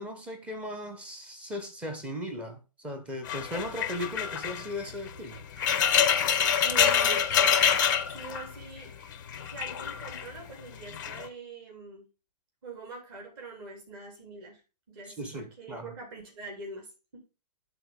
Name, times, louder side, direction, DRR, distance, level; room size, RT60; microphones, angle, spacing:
voice 1, 0.0-5.4 15.1-15.9, left 1 dB, 5° right, 1.0 m, -37 dB
sound 1, 3.3-8.8 9.1-10.3 10.9-11.3, left 8 dB, 30° left, 0.7 m, -26 dB
voice 2, 6.6-7.6 8.1-8.9 9.5-12.0 12.6-14.6 14.9-16.9 17.1-17.2, right 3 dB, 35° right, 3.4 m, -43 dB
11.5 x 4.1 x 3.5 m
figure-of-eight pair, 130°, 21 cm